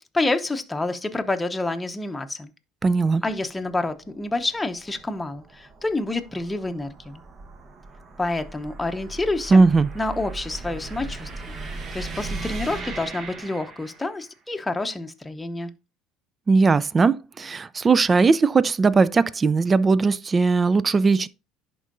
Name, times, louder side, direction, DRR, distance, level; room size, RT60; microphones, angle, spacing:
voice 1, 0.0-2.5 3.2-7.2 8.2-9.6 9.9-11.6 11.9-15.7, left 2 dB, 15° left, 0.8 m, -28 dB
voice 2, 2.8-3.2 9.5-9.9 16.5-21.3, right 4 dB, 30° right, 0.4 m, -19 dB
sound 1, 2.9-14.3, right 3 dB, 45° right, 1.2 m, -38 dB
11.0 x 3.7 x 2.6 m
supercardioid pair, 80°, 0 cm